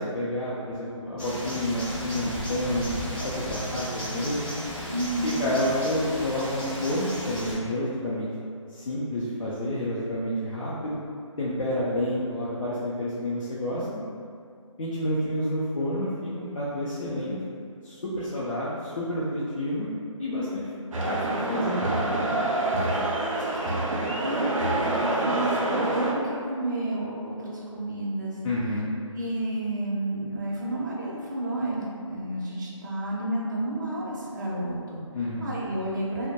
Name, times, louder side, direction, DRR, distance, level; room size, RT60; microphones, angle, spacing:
voice 1, 0.0-4.5 5.2-8.3 8.7-11.0 11.4-13.9 14.8-17.4 17.8-19.9 20.2-20.6 21.0-21.8 28.4-28.9 35.1-35.5, left 1 dB, 70° left, -8 dB, 0.5 m, -29 dB
sound 1, 1.2-7.5, equal, 15° left, 0.5 m, -35 dB
voice 2, 4.9-5.4 22.4-24.6 24.9-28.4 29.1-35.0 35.4-36.3, right 1 dB, 35° right, -5 dB, 0.5 m, -31 dB
sound 2, 20.9-26.1, right 2 dB, 85° right, 0.5 m, -26 dB
2.2 x 2.1 x 2.8 m, 2.3 s
figure-of-eight pair, 160°, 17 cm